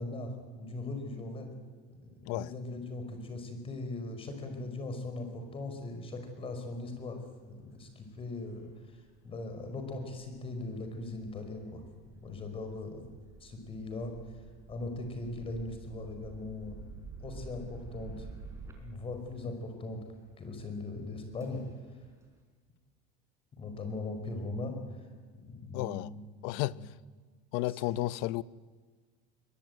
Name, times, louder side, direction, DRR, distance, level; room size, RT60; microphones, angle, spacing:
voice 1, 0.0-1.5 1.9-7.2 7.5-11.8 12.1-13.0 13.4-14.1 14.7-16.8 17.2-18.3 18.8-20.0 20.4-21.6 23.5-25.1 25.3-26.2 26.7-26.8, left 2 dB, 25° left, 5.0 m, -39 dB
sound 1, 6.0-22.4, right 4 dB, 15° right, 5.2 m, -51 dB
voice 2, 25.7-26.1 26.4-26.9 27.5-28.4, left 18 dB, 70° left, 0.7 m, -33 dB
22.5 x 21.0 x 9.2 m
cardioid pair, 135°, 21 cm